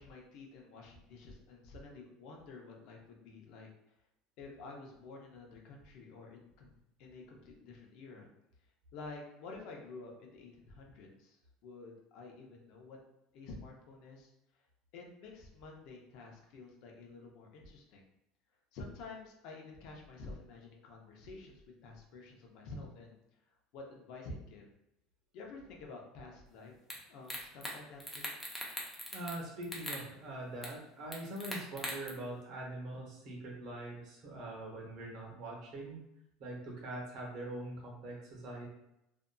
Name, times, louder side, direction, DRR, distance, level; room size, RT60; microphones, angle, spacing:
voice 1, 0.0-3.7 4.4-6.7 7.0-8.3 8.9-13.0 13.3-14.6 14.9-18.0 18.7-23.2 23.7-24.7 25.3-28.3, left 3 dB, 60° left, 0 dB, 0.6 m, -50 dB
sound 1, 26.9-27.0 27.3-27.7 28.0-29.4 29.6-30.0 30.6-30.7 31.1-32.1, left 1 dB, 10° left, 0.5 m, -40 dB
voice 2, 29.1-36.0 36.4-38.7, right 1 dB, 55° right, -2 dB, 0.9 m, -43 dB
2.6 x 2.5 x 2.2 m, 0.85 s
supercardioid pair, 135°, 0 cm